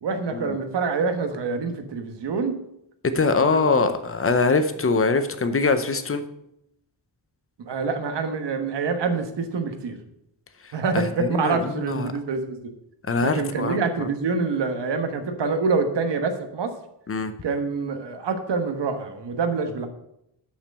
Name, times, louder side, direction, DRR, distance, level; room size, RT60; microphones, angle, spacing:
voice 1, 0.0-2.6 3.5-3.8 7.6-10.0 10.7-12.7 13.2-16.7 17.4-19.9, right 4 dB, 65° right, 7 dB, 1.3 m, -26 dB
voice 2, 3.0-6.3 10.9-12.1 13.1-14.1 17.1-17.3, left 4 dB, 30° left, 10 dB, 0.7 m, -23 dB
6.5 x 6.0 x 7.5 m, 0.79 s
wide cardioid pair, 165°, 45 cm